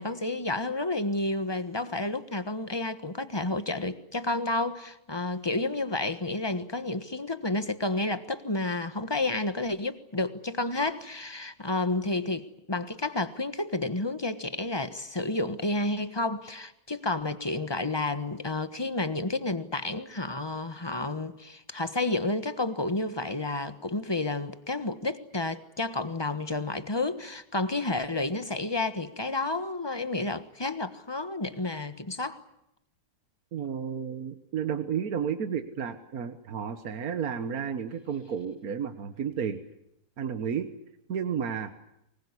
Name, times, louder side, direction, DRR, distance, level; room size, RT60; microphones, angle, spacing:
voice 1, 0.0-32.4, left 2 dB, 20° left, 11 dB, 1.3 m, -30 dB
voice 2, 33.5-39.6 40.2-40.7 41.1-41.7, right 7 dB, 70° right, 9 dB, 1.7 m, -32 dB
24.5 x 20.5 x 9.8 m, 0.83 s
omnidirectional pair, 1.6 m